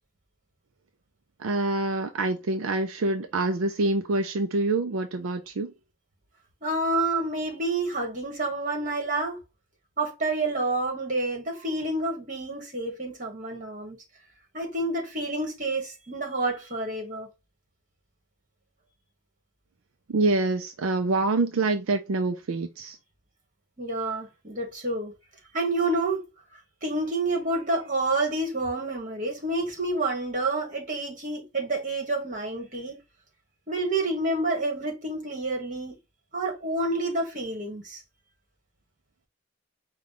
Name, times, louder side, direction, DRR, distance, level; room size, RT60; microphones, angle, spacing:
voice 1, 1.4-5.7 20.1-23.0, right 2 dB, 70° right, 0.4 m, -26 dB
voice 2, 6.6-9.4 10.0-14.0 14.5-17.3 23.8-25.1 25.5-26.2 26.8-33.0 33.7-36.0 36.3-38.0, right 2 dB, 40° right, 1.7 m, -28 dB
4.9 x 2.3 x 3.7 m
head